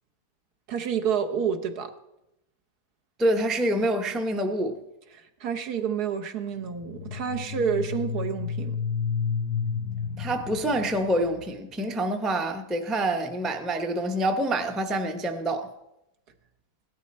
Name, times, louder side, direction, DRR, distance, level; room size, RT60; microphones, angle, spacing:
voice 1, 0.7-1.9 5.1-8.8, right 7 dB, 75° right, 1.6 m, -29 dB
voice 2, 3.2-4.8 10.2-15.7, right 1 dB, ahead, 0.5 m, -26 dB
sound 1, 6.7-11.6, left 6 dB, 70° left, 1.0 m, -31 dB
16.5 x 12.0 x 4.2 m
omnidirectional pair, 1.7 m